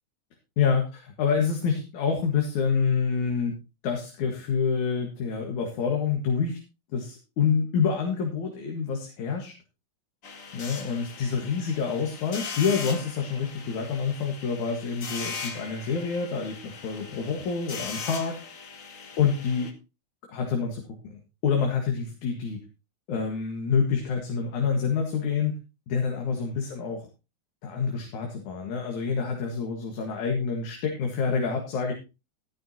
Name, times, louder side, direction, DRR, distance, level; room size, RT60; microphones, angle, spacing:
voice 1, 0.6-3.5 3.8-6.6 6.9-9.5 10.5-18.4 19.2-19.7 20.3-22.6 23.1-25.5 25.9-27.0 27.6-31.9, left 6 dB, 75° left, 1 dB, 3.1 m, -27 dB
sound 1, 10.2-19.7, left 5 dB, 50° left, 0.9 m, -39 dB
13.5 x 11.5 x 2.9 m, 0.28 s
omnidirectional pair, 3.4 m